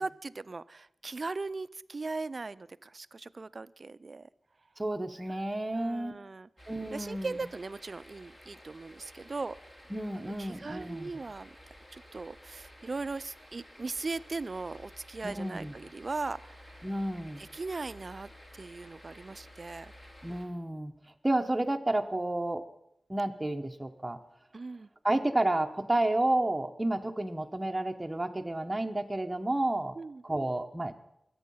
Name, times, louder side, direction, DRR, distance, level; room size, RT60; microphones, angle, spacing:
voice 1, 0.0-4.3 5.7-6.5 6.9-9.5 10.2-11.6 11.9-16.8 17.4-19.9 24.5-24.9 30.0-30.2, right 3 dB, 50° right, 16 dB, 0.5 m, -39 dB
voice 2, 4.8-6.2 6.7-7.5 9.9-11.1 15.2-15.7 16.8-17.4 20.2-20.9 21.2-22.7 23.1-24.2 25.0-30.0 30.2-30.9, right 1 dB, 20° right, 3 dB, 1.0 m, -31 dB
sound 1, 6.6-20.4, equal, 30° left, 3.3 m, -53 dB
23.5 x 8.5 x 5.6 m, 0.78 s
wide cardioid pair, 80°, 0 cm